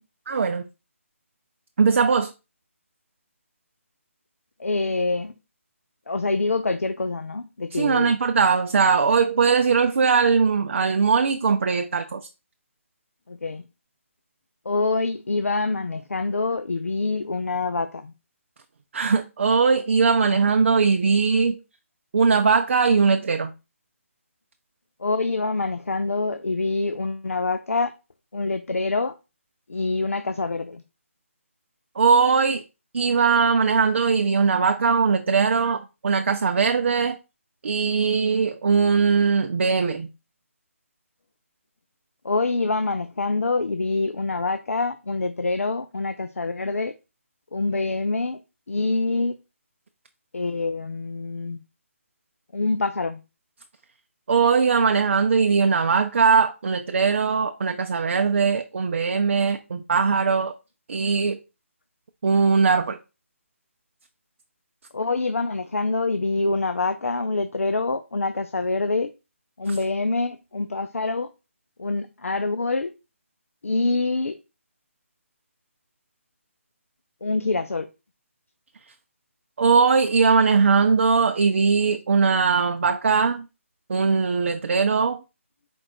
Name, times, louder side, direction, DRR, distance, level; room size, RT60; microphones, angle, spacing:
voice 1, 0.3-0.6 1.8-2.3 7.7-12.3 18.9-21.6 22.1-23.5 32.0-32.6 32.9-37.2 37.6-40.1 54.3-60.5 60.9-61.4 62.2-63.0 79.6-83.4 83.9-85.2, right 5 dB, 55° right, 0.5 m, -20 dB
voice 2, 4.6-5.3 6.1-8.1 13.3-13.6 14.7-18.1 25.0-27.9 28.3-29.1 29.7-30.8 42.2-46.9 47.5-48.4 48.7-49.3 50.3-51.6 52.5-53.2 64.9-69.1 69.6-71.3 71.8-72.9 73.6-74.4 77.2-77.9, left 3 dB, 80° left, 0.5 m, -25 dB
4.5 x 2.5 x 4.4 m
figure-of-eight pair, 150°, 8 cm